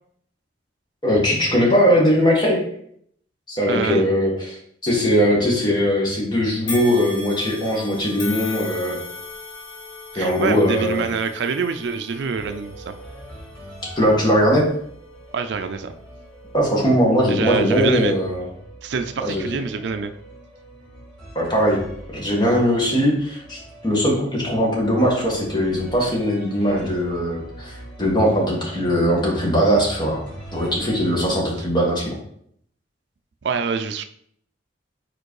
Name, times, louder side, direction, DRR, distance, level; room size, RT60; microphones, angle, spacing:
voice 1, 1.0-2.6 3.5-9.0 10.2-11.1 14.0-14.7 16.5-18.5 19.2-19.5 21.4-21.8 22.1-30.2 30.5-32.2, equal, 25° left, -3 dB, 1.8 m, -20 dB
voice 2, 3.7-4.1 10.1-12.9 15.3-15.9 17.3-18.2 18.8-20.1 33.4-34.0, right 5 dB, 65° right, 8 dB, 0.4 m, -25 dB
sound 1, 6.7-16.0 16.5-16.7 17.6-17.7, left 3 dB, 85° left, 1.7 m, -38 dB
sound 2, 12.3-31.3, right 1 dB, 5° left, 2.3 m, -42 dB
5.0 x 4.4 x 4.7 m, 0.68 s
head